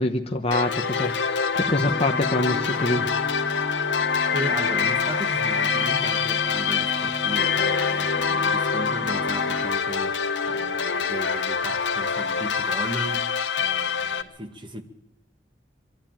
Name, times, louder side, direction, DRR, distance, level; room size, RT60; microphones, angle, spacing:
voice 1, 0.0-3.1, left 1 dB, 35° left, 1.1 m, -25 dB
sound 1, 0.5-14.2, left 6 dB, 80° left, 1.2 m, -25 dB
sound 2, 1.7-9.7, equal, 10° left, 0.9 m, -35 dB
voice 2, 4.3-14.8, right 1 dB, 30° right, 1.8 m, -36 dB
24.5 x 12.5 x 9.0 m
head